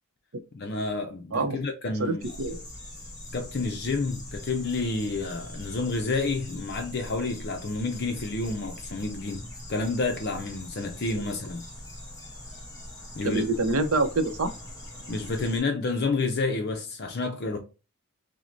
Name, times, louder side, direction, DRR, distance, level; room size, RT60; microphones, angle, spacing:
voice 1, 0.5-2.2 3.3-11.7 13.2-13.5 15.1-17.6, left 3 dB, 50° left, 0.6 m, -29 dB
voice 2, 2.0-2.6 11.2-11.3 13.2-14.5, right 2 dB, 85° right, 0.7 m, -26 dB
sound 1, 2.2-15.6, left 1 dB, 15° left, 1.2 m, -42 dB
6.1 x 2.1 x 2.5 m
head